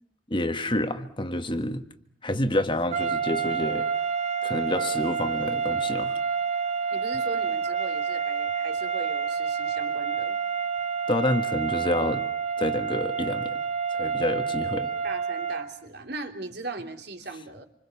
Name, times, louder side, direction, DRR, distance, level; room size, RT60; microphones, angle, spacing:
voice 1, 0.3-1.8 2.2-3.9 4.4-6.2 11.1-12.2 12.6-13.6 13.9-14.9, left 1 dB, 25° left, 8 dB, 1.6 m, -28 dB
sound 1, 2.9-15.8, right 6 dB, 35° right, 1.4 m, -28 dB
voice 2, 6.9-10.4 15.0-17.7, right 2 dB, 60° right, 5 dB, 3.1 m, -38 dB
27.5 x 26.0 x 7.1 m, 0.65 s
head